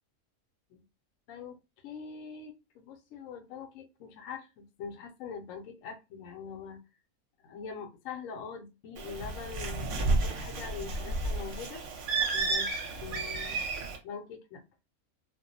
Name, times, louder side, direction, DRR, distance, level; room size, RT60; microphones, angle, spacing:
voice 1, 1.8-6.8 7.4-11.8 12.3-12.7 13.0-13.6 14.0-14.6, left 6 dB, 70° left, 4 dB, 0.9 m, -43 dB
Bird, 9.0-14.0, right 3 dB, 65° right, 0.9 m, -31 dB
2.4 x 2.0 x 2.6 m, 0.25 s
omnidirectional pair, 1.6 m